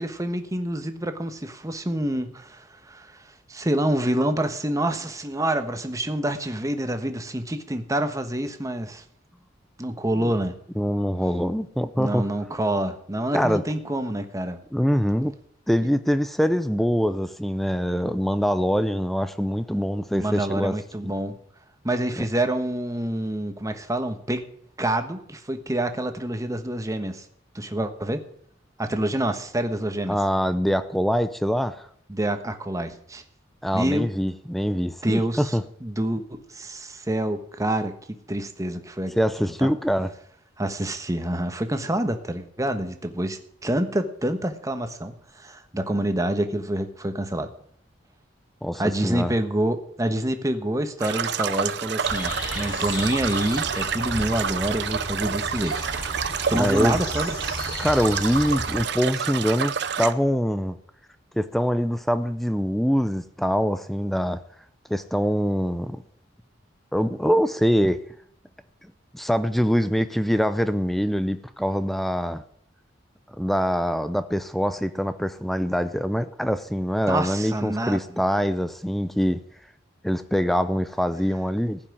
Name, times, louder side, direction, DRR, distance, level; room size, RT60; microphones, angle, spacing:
voice 1, 0.0-9.0 9.8-10.6 12.0-14.6 20.1-21.4 21.8-24.4 24.8-27.3 27.5-28.2 28.8-30.2 32.1-33.2 33.7-34.1 35.0-39.1 39.6-39.7 40.6-47.5 48.8-55.8 56.5-57.4 77.1-78.2, right 1 dB, 20° right, 1.2 m, -27 dB
voice 2, 10.8-12.3 13.3-13.6 14.7-15.4 15.7-20.7 21.0-21.1 30.1-31.9 33.6-35.6 39.2-40.1 48.6-49.3 56.5-57.0 57.8-60.8 61.4-64.4 64.9-66.0 66.9-68.0 69.1-72.4 73.4-79.4 80.0-81.8, equal, ahead, 0.5 m, -24 dB
sound 1, 51.0-60.1, right 7 dB, 65° right, 0.7 m, -29 dB
sound 2, 52.0-58.8, left 1 dB, 25° left, 7.1 m, -34 dB
15.0 x 5.9 x 10.0 m
head